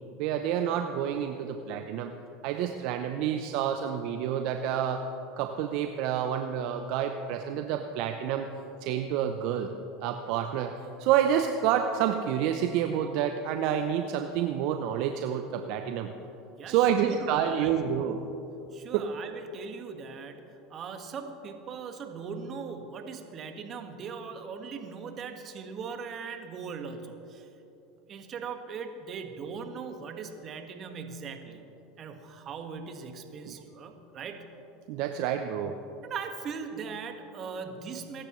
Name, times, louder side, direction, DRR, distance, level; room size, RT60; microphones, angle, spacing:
voice 1, 0.2-2.1 2.4-5.0 5.4-8.5 8.8-9.7 10.0-10.7 11.0-16.1 16.7-18.2 18.9-19.1 33.4-33.6 34.9-35.8, right 9 dB, 65° right, 6 dB, 0.7 m, -28 dB
voice 2, 16.6-17.9 18.7-20.4 20.7-27.5 28.1-31.6 32.0-34.5 36.0-38.3, right 5 dB, 40° right, 6 dB, 1.6 m, -40 dB
23.5 x 12.0 x 3.2 m, 3.0 s
hypercardioid pair, 85°, 0 cm